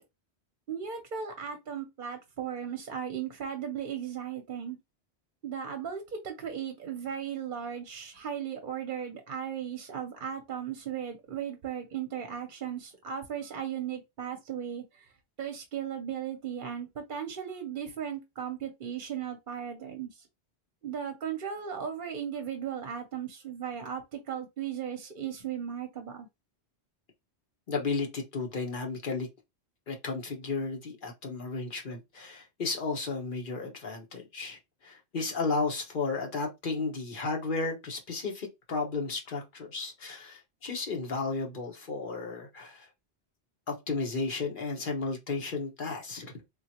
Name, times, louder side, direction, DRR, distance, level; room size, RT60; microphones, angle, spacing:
voice 1, 0.7-4.8 5.4-15.1 15.4-20.3 20.8-26.3, right 8 dB, 55° right, 0.8 m, -36 dB
voice 2, 27.7-29.3 29.9-42.9 43.7-46.3, left 4 dB, 50° left, 1.2 m, -33 dB
3.7 x 2.4 x 2.8 m
omnidirectional pair, 1.1 m